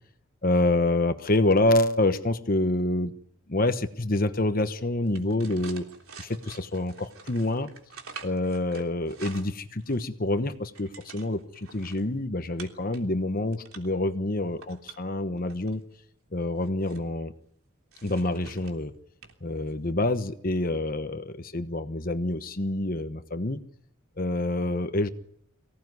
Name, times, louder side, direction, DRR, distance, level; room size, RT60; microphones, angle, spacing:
voice 1, 0.4-3.1 3.5-5.9 6.2-7.7 8.2-15.8 16.3-17.3 18.0-18.9 19.4-23.6 24.2-25.1, left 2 dB, 40° left, 10 dB, 1.1 m, -27 dB
sound 1, 5.0-10.1 10.4-12.0 12.6-13.0 13.4-14.0 14.5-15.8 16.4-17.1 17.9-18.8 19.2-19.4 19.7-19.9, right 6 dB, 85° right, 3.3 m, -47 dB
24.0 x 17.5 x 9.5 m, 0.71 s
head